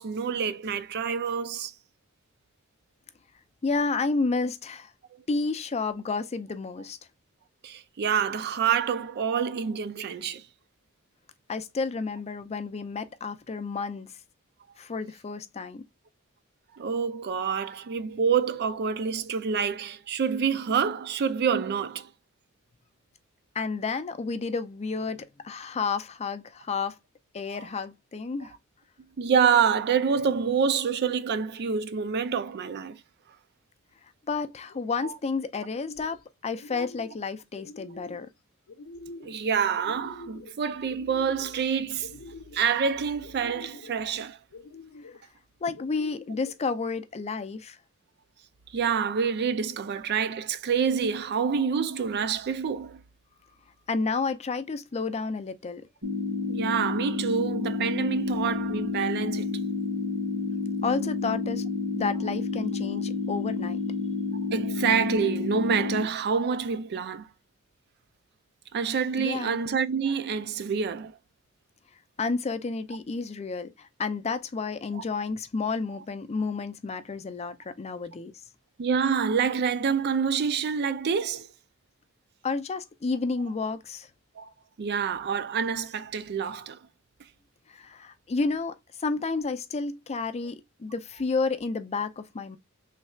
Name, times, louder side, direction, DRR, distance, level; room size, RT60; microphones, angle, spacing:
voice 1, 0.0-1.7 7.6-10.5 16.7-22.1 27.5-27.6 29.2-33.0 35.0-35.1 39.2-42.2 42.5-44.4 48.7-53.0 56.5-59.5 64.5-67.3 68.7-71.1 74.9-75.0 78.8-81.5 84.4-84.5 84.8-86.8, right 6 dB, 50° right, 0.4 m, -27 dB
voice 2, 3.6-4.9 5.3-7.0 11.5-14.1 14.8-15.8 23.5-27.0 27.3-28.5 34.3-38.3 45.6-47.8 53.9-55.9 60.8-61.6 61.9-63.8 69.2-69.6 72.2-78.3 82.4-84.1 87.7-92.6, left 4 dB, 30° left, 0.4 m, -31 dB
sound 1, 34.6-35.1 35.5-36.2 36.5-37.2 37.6-38.3 38.7-39.4 39.8-40.6 40.9-41.6 42.0-42.7 43.2-44.0 44.5-45.2 45.7-46.5, left 3 dB, 75° left, 0.7 m, -46 dB
sound 2, 56.0-66.0, left 4 dB, 75° right, 1.7 m, -30 dB
3.2 x 2.4 x 4.2 m
head